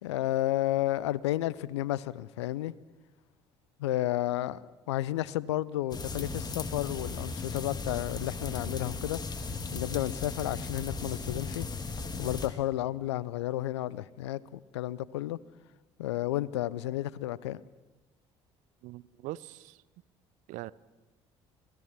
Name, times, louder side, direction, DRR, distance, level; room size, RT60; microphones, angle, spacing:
voice 1, 0.0-2.7 3.8-4.6 4.9-9.2 9.7-11.7 12.2-15.4 16.0-17.6, left 14 dB, 80° left, 21 dB, 0.6 m, -32 dB
sound 1, 5.9-12.5, left 4 dB, 30° left, 3.1 m, -36 dB
voice 2, 18.8-19.8 20.5-20.7, right 17 dB, 60° right, 19 dB, 0.7 m, -41 dB
27.0 x 18.5 x 6.1 m, 1.1 s
hypercardioid pair, 55°, 14 cm